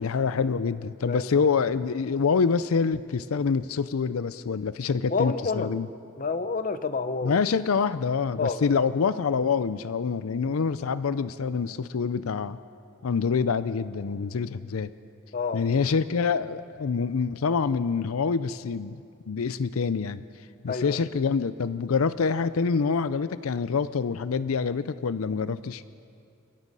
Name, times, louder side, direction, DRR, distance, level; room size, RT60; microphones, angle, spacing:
voice 1, 0.0-5.9 7.2-12.6 13.0-14.9 15.5-19.0 19.3-20.2 20.6-25.8, left 5 dB, 85° left, 15 dB, 0.5 m, -26 dB
voice 2, 1.1-1.5 5.1-5.7 6.2-7.4 8.4-8.8 15.3-15.6 20.7-21.1, left 4 dB, 40° left, 11 dB, 0.8 m, -29 dB
29.5 x 16.5 x 5.5 m, 2.5 s
head